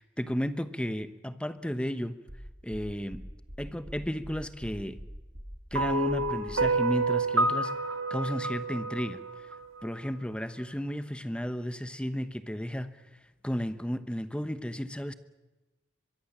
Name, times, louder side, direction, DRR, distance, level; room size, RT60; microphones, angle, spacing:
voice 1, 0.0-2.1 2.6-3.2 3.6-5.0 5.7-7.7 8.1-9.2 9.8-13.0 13.4-15.1, equal, 5° left, 12 dB, 1.0 m, -33 dB
sound 1, 2.3-6.7, equal, 60° right, 7.7 m, -43 dB
sound 2, 5.7-10.1, right 2 dB, 85° right, 1.5 m, -29 dB
23.0 x 22.5 x 7.4 m, 1.1 s
head